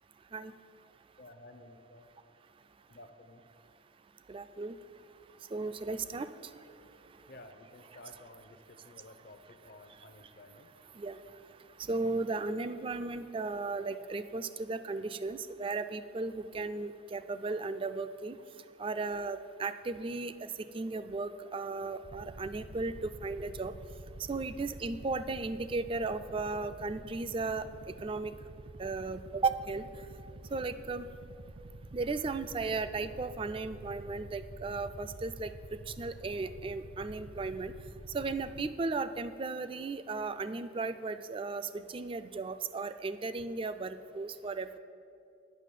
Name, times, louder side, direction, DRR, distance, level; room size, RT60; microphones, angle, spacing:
voice 1, 1.2-2.1 2.9-3.4 7.3-10.7, left 2 dB, 55° left, 7 dB, 0.6 m, -53 dB
voice 2, 4.3-4.8 5.5-6.5 11.0-11.2 11.8-18.4 18.8-23.7 24.3-28.3 28.8-29.9 30.5-31.1 31.9-37.7 38.1-44.8, right 3 dB, 30° right, 12 dB, 0.3 m, -35 dB
sound 1, 22.0-38.7, right 1 dB, 60° right, 0.7 m, -48 dB
9.1 x 6.0 x 8.3 m, 2.6 s
head